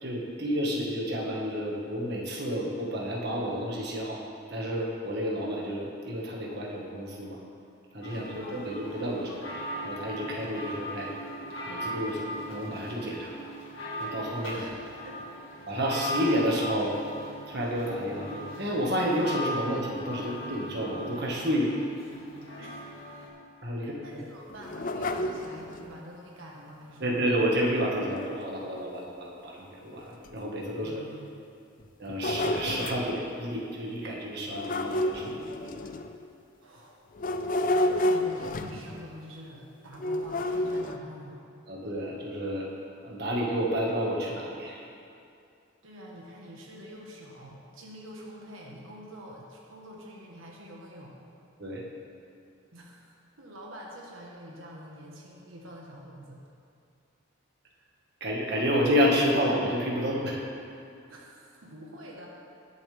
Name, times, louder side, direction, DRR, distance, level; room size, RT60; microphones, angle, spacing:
voice 1, 0.0-4.2 4.5-7.4 7.9-9.5 9.8-11.1 11.7-13.5 14.0-14.7 15.7-17.0 17.5-21.8 23.6-24.2 27.0-31.1 32.0-35.7 41.7-42.7 43.0-44.8 51.6-51.8 58.2-60.4, equal, 50° right, -3 dB, 1.7 m, -30 dB
sound 1, 8.0-23.3, equal, 75° left, 2.0 m, -39 dB
voice 2, 8.1-8.6 14.4-15.7 22.6-22.8 23.8-27.2 30.8-31.4 36.6-37.0 37.4-41.4 45.8-51.1 52.7-56.4 61.1-62.3, equal, 80° right, -2 dB, 1.4 m, -46 dB
sound 2, 24.5-25.9 28.2-28.3 28.8-28.9 29.6-29.7 30.3-30.4 31.8-33.1 34.5-36.3 37.2-39.1 40.0-41.0, left 1 dB, 40° left, 0.5 m, -30 dB
20.0 x 7.2 x 3.5 m, 2.5 s
head